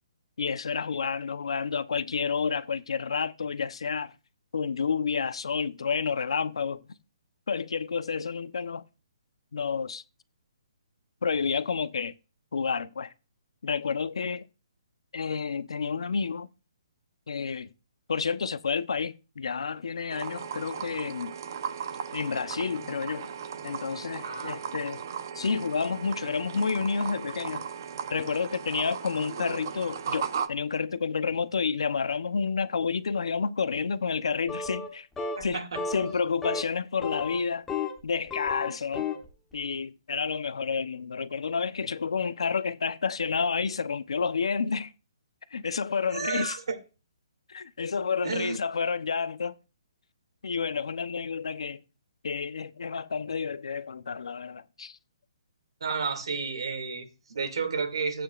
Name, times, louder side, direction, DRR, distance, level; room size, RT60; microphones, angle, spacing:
voice 1, 0.4-4.1 4.5-6.8 7.5-8.8 9.5-10.0 11.2-12.1 12.5-13.1 13.6-14.5 15.1-16.5 17.3-17.7 18.1-21.3 22.1-23.3 23.6-25.0 25.3-27.7 28.1-35.1 35.4-35.6 35.9-37.7 38.0-39.1 39.5-44.9 45.5-46.6 47.5-49.6 50.4-51.8 52.2-55.0, left 5 dB, 75° left, 0.9 m, -30 dB
sound 1, 20.1-30.5, right 7 dB, 40° right, 0.8 m, -37 dB
sound 2, 34.5-34.9 35.2-35.5 35.8-36.1 36.4-36.7 37.0-38.0 38.3-39.3, left 5 dB, 5° left, 1.1 m, -33 dB
voice 2, 35.3-35.8 46.1-46.8 48.2-48.6 55.8-58.2, right 5 dB, 60° right, 2.6 m, -32 dB
15.5 x 8.9 x 2.5 m
hypercardioid pair, 175°, 3 cm